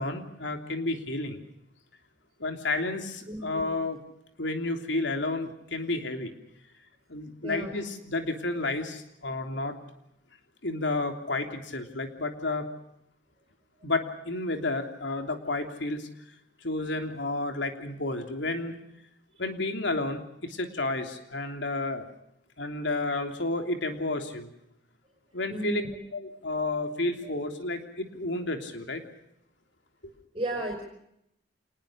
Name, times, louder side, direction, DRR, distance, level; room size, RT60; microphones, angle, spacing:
voice 1, 0.0-1.4 2.4-4.0 4.4-6.3 7.1-9.8 10.6-12.6 13.8-16.1 16.6-18.8 19.4-22.1 22.6-24.5 25.3-25.8 26.1-29.0, left 2 dB, 75° left, 6 dB, 3.2 m, -31 dB
voice 2, 3.2-3.7 7.4-7.7 25.5-26.0 27.2-27.3 30.3-30.8, right 1 dB, 30° right, 2 dB, 5.3 m, -34 dB
28.0 x 19.5 x 6.4 m, 0.79 s
head